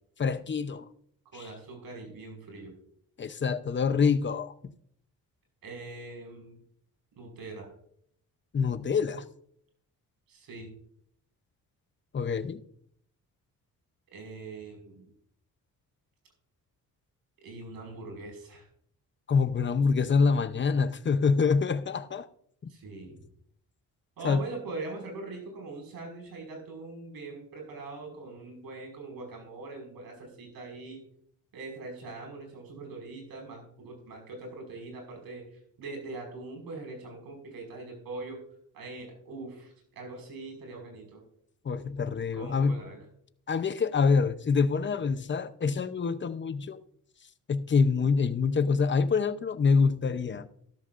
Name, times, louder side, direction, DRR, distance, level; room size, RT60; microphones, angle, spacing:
voice 1, 0.2-0.9 1.3-1.5 3.2-4.7 8.5-9.3 12.1-12.6 19.3-22.3 22.6-22.7 24.2-24.4 41.6-42.9 43.5-46.8 47.5-50.5, left 5 dB, 30° left, 0.8 m, -26 dB
voice 2, 1.3-2.7 5.6-6.6 7.2-7.7 10.3-10.7 14.1-15.1 17.4-18.7 22.7-23.3 24.2-31.0 31.5-38.4 38.7-41.2 42.3-43.0, right 3 dB, 75° right, 5.7 m, -42 dB
14.5 x 13.0 x 2.6 m
cardioid pair, 105°, 36 cm